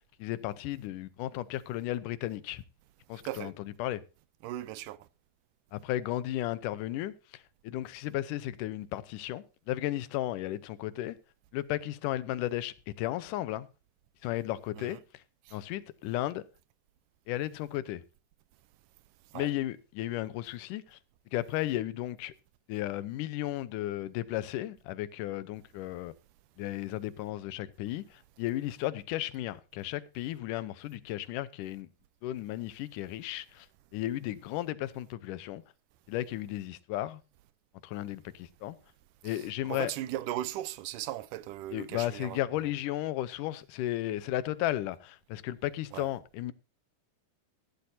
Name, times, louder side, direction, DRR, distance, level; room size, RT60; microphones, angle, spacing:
voice 1, 0.0-2.6 3.1-4.0 5.7-11.2 11.5-13.7 14.2-15.2 15.5-16.4 17.3-18.0 19.3-21.0 21.3-22.3 22.7-26.1 26.6-31.9 32.2-33.7 33.9-35.6 36.1-37.2 37.8-38.8 39.2-39.9 41.7-46.5, left 14 dB, 85° left, 2.3 m, -34 dB
voice 2, 4.4-5.0 14.8-15.0 15.5-15.6 19.3-19.5 39.7-42.4 45.9-46.1, right 14 dB, 90° right, 2.3 m, -37 dB
15.0 x 11.5 x 2.7 m
omnidirectional pair, 3.6 m